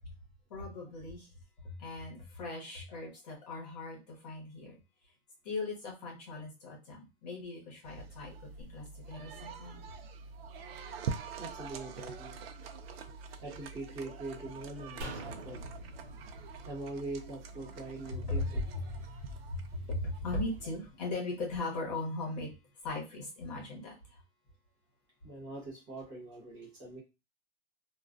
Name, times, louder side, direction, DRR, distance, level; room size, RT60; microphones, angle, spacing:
voice 1, 0.5-1.3 1.6-4.8 5.4-8.3 8.6-9.8 18.2-18.4 18.7-22.5 22.8-24.2, left 2 dB, 40° left, 0.9 m, -39 dB
sound 1, 7.8-20.8, right 5 dB, 65° right, 0.4 m, -45 dB
voice 2, 11.4-12.4 13.4-15.6 16.6-18.6 25.2-27.0, right 2 dB, 25° right, 0.9 m, -43 dB
sound 2, 15.0-18.3 18.6-18.7, right 1 dB, 85° right, 0.8 m, -46 dB
Keyboard (musical), 18.1-21.0, left 5 dB, 75° left, 1.0 m, -56 dB
2.3 x 2.2 x 2.4 m
supercardioid pair, 175°, 33 cm